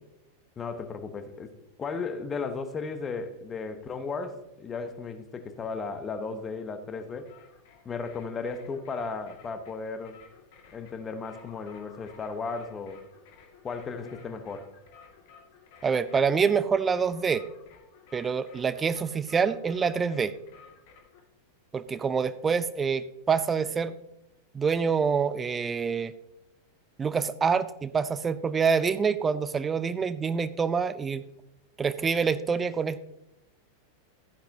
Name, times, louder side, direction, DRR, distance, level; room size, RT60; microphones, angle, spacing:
voice 1, 0.6-1.5 1.8-7.3 7.8-10.2 10.7-13.0 13.6-14.7, left 4 dB, 20° left, 9 dB, 1.1 m, -35 dB
sound 1, 7.1-21.2, left 6 dB, 50° left, 2.0 m, -54 dB
voice 2, 15.8-17.4 18.1-20.3 21.7-24.0 24.5-26.1 27.0-31.2 31.8-33.0, right 6 dB, 20° right, 14 dB, 0.5 m, -26 dB
14.0 x 10.0 x 2.8 m, 0.88 s
figure-of-eight pair, 90°, 0 cm